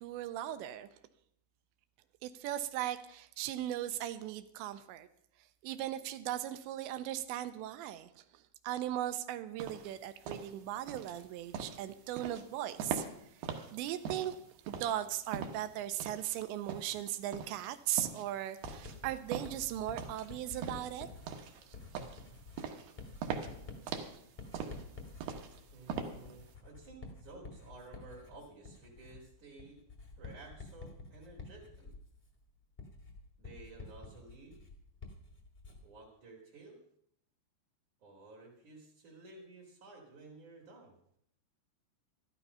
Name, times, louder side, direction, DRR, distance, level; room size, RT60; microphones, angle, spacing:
voice 1, 0.0-0.9 2.2-5.1 5.6-13.0 13.7-14.4 14.7-21.1, right 12 dB, 85° right, 11 dB, 2.9 m, -38 dB
sound 1, 9.6-26.5, right 6 dB, 70° right, 2.9 m, -42 dB
Writing, 18.6-36.0, left 3 dB, 60° left, 0.4 m, -50 dB
voice 2, 25.7-29.8 30.2-31.9 33.4-34.6 35.8-36.8 38.0-41.0, right 3 dB, 50° right, -4 dB, 3.1 m, -53 dB
13.0 x 12.5 x 5.5 m, 0.70 s
omnidirectional pair, 5.2 m